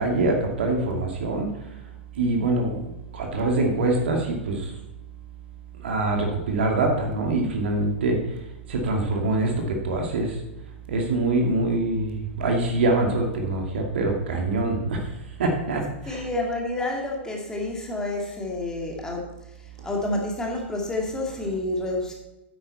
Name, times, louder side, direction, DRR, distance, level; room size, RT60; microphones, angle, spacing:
voice 1, 0.0-1.5 2.1-4.7 5.8-8.2 8.7-10.4 10.9-15.1 15.4-16.3, right 2 dB, 60° right, 2 dB, 2.4 m, -24 dB
voice 2, 16.1-19.3 19.8-22.1, left 2 dB, 10° left, -1 dB, 2.2 m, -29 dB
9.4 x 9.0 x 4.2 m, 0.96 s
figure-of-eight pair, 105°, 7 cm